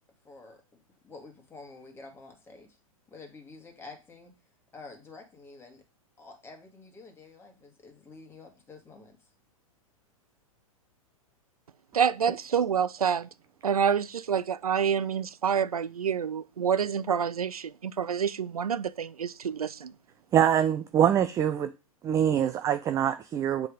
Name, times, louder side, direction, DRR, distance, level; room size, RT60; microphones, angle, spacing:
voice 1, 0.2-0.6 1.0-2.8 3.1-4.3 4.7-5.8 6.2-9.2, left 3 dB, 15° left, 1.9 m, -49 dB
voice 2, 11.9-13.3 13.6-19.9, right 7 dB, 85° right, 0.4 m, -27 dB
voice 3, 20.3-21.7 22.0-23.7, right 10 dB, 15° right, 0.3 m, -24 dB
7.5 x 3.5 x 4.9 m
hypercardioid pair, 110°, 18 cm